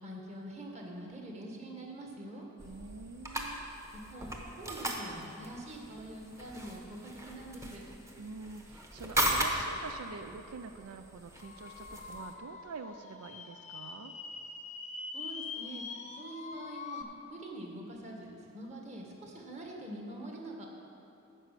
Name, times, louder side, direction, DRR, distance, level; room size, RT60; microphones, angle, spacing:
voice 1, 0.0-2.4 3.9-4.3 4.5-7.8 15.1-15.8 16.2-17.0 17.3-20.7, right 1 dB, 30° right, -1 dB, 1.5 m, -44 dB
sound 1, 2.6-12.3, right 1 dB, 15° right, 1.0 m, -38 dB
voice 2, 2.6-3.7 8.2-14.1, right 4 dB, 85° right, 7 dB, 0.4 m, -46 dB
sound 2, 11.4-17.0, left 4 dB, 30° left, 0.7 m, -44 dB
9.9 x 6.2 x 8.3 m, 2.8 s
head